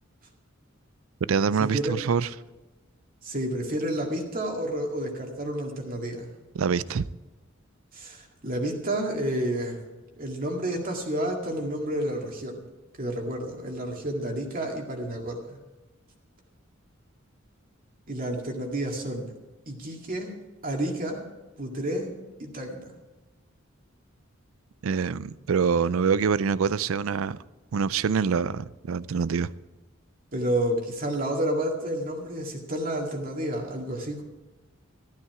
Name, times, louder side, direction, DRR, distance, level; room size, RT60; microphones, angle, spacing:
voice 1, 1.3-2.3 6.5-7.1 24.8-27.4 27.7-29.5, right 6 dB, 80° right, 0.4 m, -25 dB
voice 2, 3.2-6.3 7.9-9.8 10.2-12.7 13.0-15.6 18.1-19.3 19.7-20.3 20.6-21.2 21.6-22.1 22.4-22.9 30.3-34.2, right 1 dB, 45° right, 2.0 m, -30 dB
13.0 x 12.5 x 4.8 m
head